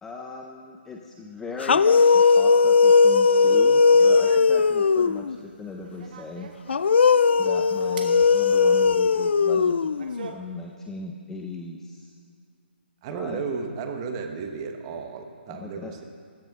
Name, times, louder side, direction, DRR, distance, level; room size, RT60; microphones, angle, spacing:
voice 1, 0.0-6.5 7.4-9.8 10.3-12.1 13.1-13.4 15.5-15.9, left 3 dB, 5° left, 1 dB, 0.6 m, -38 dB
sound 1, 1.6-5.4 6.7-10.3, left 5 dB, 75° left, 0.4 m, -18 dB
sound 2, 3.4-10.3, right 5 dB, 45° right, 1.3 m, -45 dB
voice 2, 13.0-16.0, right 5 dB, 30° right, 5 dB, 1.2 m, -33 dB
14.5 x 14.5 x 3.6 m, 2.1 s
hypercardioid pair, 155°, 6 cm